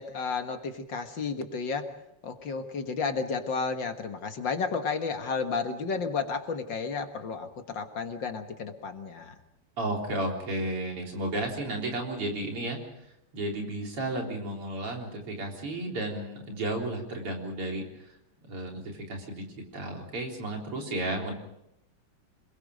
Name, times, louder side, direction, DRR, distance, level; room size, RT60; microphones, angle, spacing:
voice 1, 0.0-1.9 2.2-9.3, left 5 dB, 60° left, 6 dB, 2.2 m, -32 dB
voice 2, 9.8-12.8 13.3-18.1 18.4-19.4 19.7-21.3, right 1 dB, 85° right, 1 dB, 4.8 m, -33 dB
27.5 x 21.5 x 5.1 m, 0.80 s
omnidirectional pair, 2.4 m